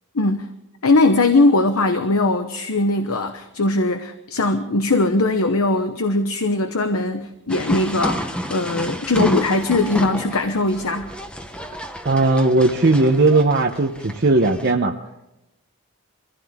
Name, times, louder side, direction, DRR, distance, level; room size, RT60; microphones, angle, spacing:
voice 1, 0.1-0.5 0.8-11.1, left 2 dB, 75° left, 8 dB, 0.9 m, -20 dB
sound 1, 7.5-14.7, equal, 5° left, 0.9 m, -29 dB
voice 2, 12.0-14.9, right 2 dB, 50° right, 2 dB, 0.8 m, -17 dB
24.0 x 15.5 x 3.6 m, 0.92 s
head